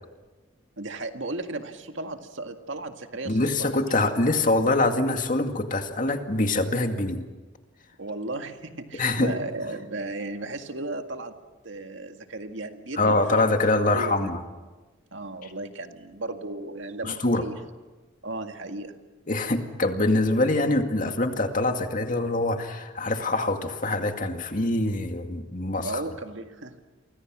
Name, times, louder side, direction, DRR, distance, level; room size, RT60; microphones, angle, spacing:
voice 1, 0.8-3.7 8.0-11.3 11.6-14.3 15.1-17.5 18.2-19.0 25.8-26.8, right 2 dB, 75° right, 6 dB, 2.0 m, -35 dB
voice 2, 3.3-7.2 8.9-9.3 13.0-14.4 17.0-17.4 19.3-26.0, left 2 dB, 45° left, 5 dB, 2.1 m, -24 dB
29.5 x 24.5 x 6.3 m, 1.3 s
head